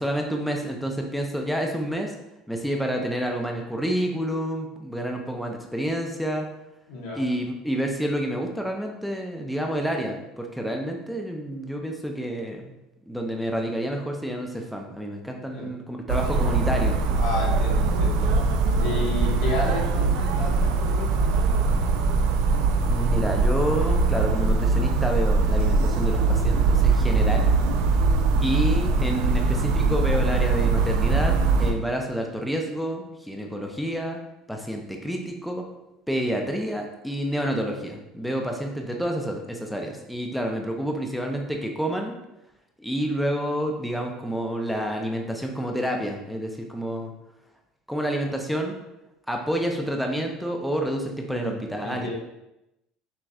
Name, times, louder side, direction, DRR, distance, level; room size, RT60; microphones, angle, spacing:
voice 1, 0.0-2.1 2.5-6.5 7.1-12.7 13.1-17.0 22.8-27.5 28.4-34.2 34.5-35.6 36.1-42.1 42.8-47.1 47.9-48.8 49.3-52.1, equal, ahead, 1 dB, 0.6 m, -29 dB
voice 2, 6.9-7.2 15.5-15.7 17.2-18.3 18.8-21.3 51.3-52.1, left 2 dB, 80° left, -3 dB, 1.5 m, -32 dB
sound 1, 16.1-31.7, right 3 dB, 80° right, 0.5 m, -22 dB
6.0 x 3.0 x 2.4 m, 0.91 s
supercardioid pair, 100°, 0 cm